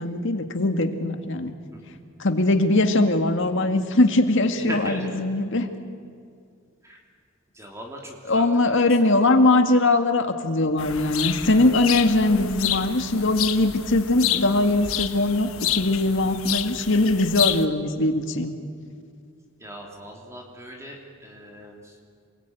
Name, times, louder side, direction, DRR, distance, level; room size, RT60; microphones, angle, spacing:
voice 1, 0.0-1.5 2.2-5.7 8.3-18.6, left 2 dB, 65° left, 7 dB, 2.0 m, -21 dB
voice 2, 4.7-5.2 6.8-7.0 7.5-8.4 8.8-8.9 19.6-21.9, equal, 15° right, 0 dB, 3.0 m, -38 dB
sound 1, 10.8-17.7, left 11 dB, 80° left, 1.2 m, -29 dB
27.5 x 20.5 x 9.3 m, 2.2 s
head